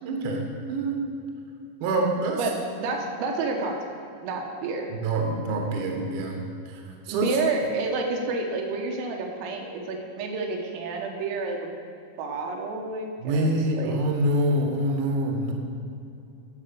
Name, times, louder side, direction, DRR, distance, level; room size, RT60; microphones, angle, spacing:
voice 1, 0.0-1.1 1.8-2.5 4.9-7.4 13.2-15.5, right 1 dB, 65° right, 2 dB, 2.2 m, -26 dB
voice 2, 2.3-3.8 4.2-4.9 7.1-11.7 12.2-13.9, right 3 dB, 85° right, 1 dB, 4.0 m, -29 dB
12.5 x 6.9 x 7.0 m, 2.6 s
omnidirectional pair, 5.7 m